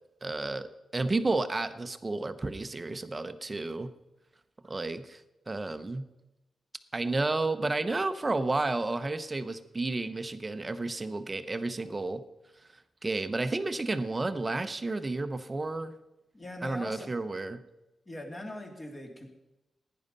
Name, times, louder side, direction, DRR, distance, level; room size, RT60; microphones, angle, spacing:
voice 1, 0.2-3.9 4.6-6.0 6.9-12.2 13.0-15.9 16.6-17.6, right 2 dB, 25° right, 11 dB, 0.9 m, -31 dB
voice 2, 16.3-17.1 18.1-19.3, left 1 dB, 25° left, 2 dB, 2.7 m, -41 dB
16.5 x 10.5 x 5.5 m, 0.98 s
wide cardioid pair, 120°, 0 cm